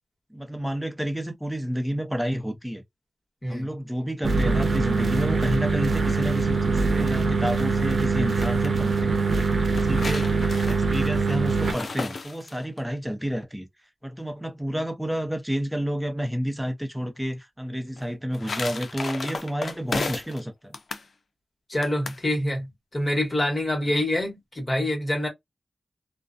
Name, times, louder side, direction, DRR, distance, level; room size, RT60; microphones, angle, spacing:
voice 1, 0.3-2.8 3.5-9.2 9.7-10.4 10.7-13.7 14.0-20.8 23.9-24.0, equal, 5° right, 0.6 m, -30 dB
sound 1, 4.2-11.7, right 4 dB, 75° right, 0.6 m, -23 dB
sound 2, 8.1-8.7 9.5-12.8 18.0-20.4 20.7-21.1 21.8-22.2, left 4 dB, 75° left, 0.4 m, -34 dB
voice 2, 21.7-25.3, left 1 dB, 35° left, 1.2 m, -26 dB
2.3 x 2.2 x 2.5 m
wide cardioid pair, 90°, 0 cm